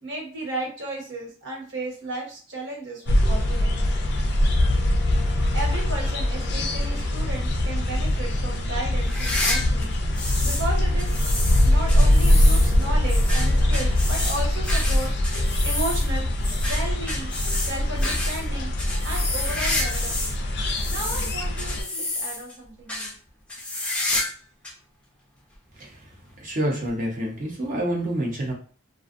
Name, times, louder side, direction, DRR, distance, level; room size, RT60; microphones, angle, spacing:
voice 1, 0.0-3.8 5.5-9.9 10.4-11.1 11.6-16.3 16.6-18.7 19.0-20.4 20.9-23.1, right 2 dB, 65° right, -1 dB, 1.0 m, -34 dB
sound 1, 3.0-15.0, left 1 dB, 90° right, 0.5 m, -44 dB
sound 2, 3.1-21.8, left 1 dB, 55° left, 0.4 m, -22 dB
sound 3, 9.0-10.7 11.0-20.4 20.7-22.5 22.9-23.1 23.5-24.4 24.6-24.7 25.5-25.6 26.9-27.0, left 2 dB, 5° left, 0.5 m, -30 dB
voice 2, 26.4-28.5, right 1 dB, 40° right, -1 dB, 0.7 m, -27 dB
2.5 x 2.2 x 2.5 m, 0.41 s
head